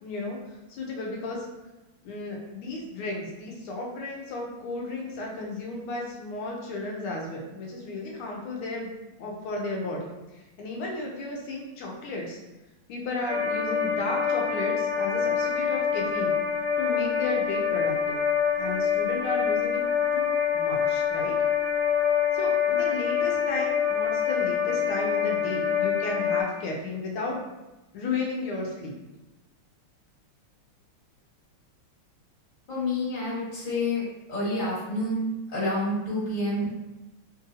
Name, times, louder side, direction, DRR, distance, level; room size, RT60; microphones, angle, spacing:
voice 1, 0.0-1.5 2.0-8.9 9.2-10.1 10.3-12.4 12.9-16.3 16.8-18.2 18.6-19.8 20.1-21.4 22.3-27.4 27.9-28.9, left 2 dB, 75° left, -1 dB, 1.5 m, -34 dB
sound 1, 13.3-26.4, left 7 dB, 30° right, 0.5 m, -26 dB
voice 2, 32.7-34.0 34.3-36.7, left 1 dB, 25° left, -9 dB, 1.4 m, -28 dB
3.6 x 2.6 x 2.6 m, 1.0 s
omnidirectional pair, 2.4 m